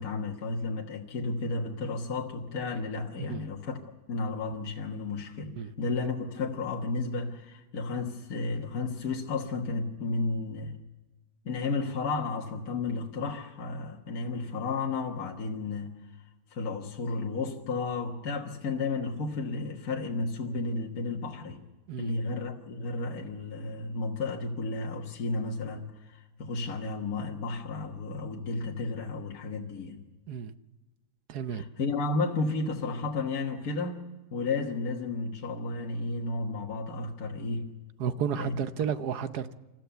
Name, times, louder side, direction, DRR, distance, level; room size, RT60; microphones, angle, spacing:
voice 1, 0.0-3.8 4.1-5.5 5.8-10.8 11.5-15.9 16.5-21.6 22.0-30.0 31.5-34.0 34.3-37.6 38.3-38.6, left 3 dB, 60° left, 1 dB, 1.9 m, -32 dB
voice 2, 31.3-31.6 38.0-39.5, right 8 dB, 70° right, 12 dB, 1.3 m, -32 dB
27.5 x 14.0 x 6.9 m, 1.1 s
omnidirectional pair, 1.8 m